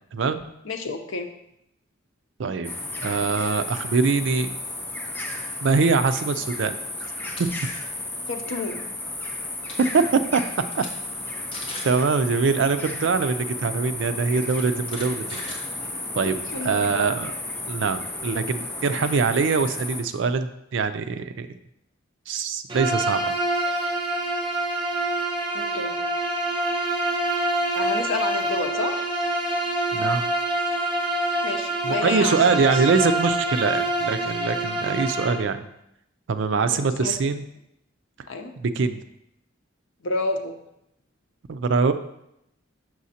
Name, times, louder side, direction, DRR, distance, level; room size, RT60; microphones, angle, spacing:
voice 1, 0.6-1.3 8.3-8.8 16.5-17.0 25.5-26.0 27.7-29.1 31.4-33.1 36.7-37.1 38.3-38.5 40.0-40.6, left 3 dB, 80° left, 5 dB, 0.7 m, -30 dB
voice 2, 2.4-2.7 3.0-4.5 5.6-6.7 7.0-7.1 7.4-7.5 9.9-10.4 11.8-15.2 16.2-17.3 17.7-21.5 22.3-23.2 29.9-30.3 31.8-35.6 36.3-37.4 38.6-39.0 41.5-41.9, right 4 dB, 70° right, 10 dB, 0.4 m, -23 dB
sound 1, 2.6-20.0, left 2 dB, 10° left, 0.6 m, -33 dB
sound 2, 7.1-7.4 7.8-8.1 9.3-9.4 9.6-9.9 10.4-10.9 11.2-11.3 11.5-12.0 13.2-13.3 14.3-16.2, left 2 dB, 30° left, 1.1 m, -39 dB
Bowed string instrument, 22.7-35.5, right 1 dB, 25° right, 0.7 m, -26 dB
6.3 x 6.1 x 2.8 m, 0.81 s
head